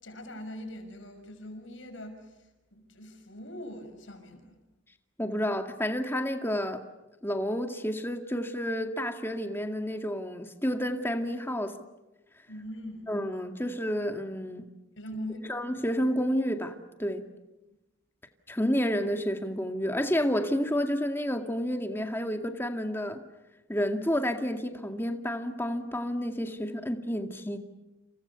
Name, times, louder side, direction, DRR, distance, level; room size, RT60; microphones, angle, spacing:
voice 1, 0.0-2.3 2.7-4.6 12.5-13.1 15.0-15.5, left 1 dB, 80° left, 6 dB, 6.1 m, -41 dB
voice 2, 5.2-6.8 7.2-11.7 13.1-14.6 15.5-17.2 18.5-23.2 23.7-27.6, equal, 10° left, 5 dB, 2.1 m, -30 dB
30.0 x 29.0 x 7.0 m, 0.98 s
head